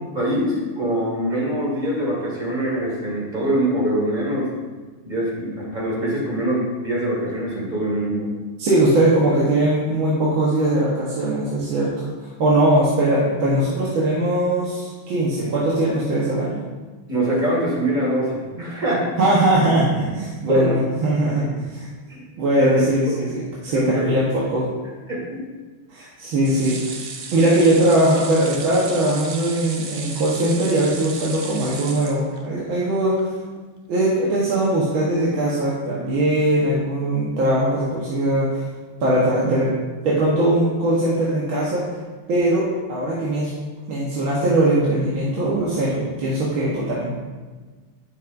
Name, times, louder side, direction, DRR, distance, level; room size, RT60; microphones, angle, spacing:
voice 1, 0.1-4.5 5.1-8.3 17.1-19.2 20.5-20.8 21.3-21.4 22.1-22.2 22.6-22.9 23.2-23.3 23.7-24.1 25.1-25.5 26.0-26.1, right 1 dB, 20° right, -4 dB, 1.9 m, -23 dB
voice 2, 8.6-12.1 12.4-16.6 19.2-21.9 22.4-24.7 25.9-27.0 27.3-33.3 33.9-38.6 39.0-39.7 40.0-41.8 42.3-43.5 43.9-47.1, right 1 dB, 65° right, -6 dB, 1.9 m, -20 dB
sound 1, 26.4-32.7 33.2-33.3 33.6-33.7, right 5 dB, 85° right, 0.7 m, -35 dB
10.5 x 6.3 x 2.6 m, 1.3 s
omnidirectional pair, 2.4 m